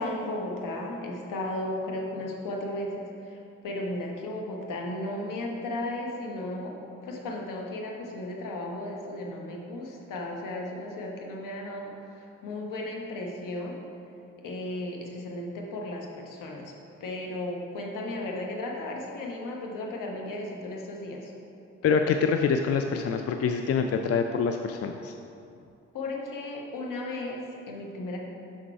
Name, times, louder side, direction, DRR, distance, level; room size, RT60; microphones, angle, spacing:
voice 1, 0.0-13.8 14.4-16.7 17.0-21.3 25.9-28.2, left 1 dB, 70° left, 0 dB, 1.2 m, -35 dB
voice 2, 21.8-25.1, left 6 dB, 45° left, 5 dB, 0.5 m, -25 dB
6.1 x 6.0 x 4.5 m, 2.7 s
hypercardioid pair, 40°, 34 cm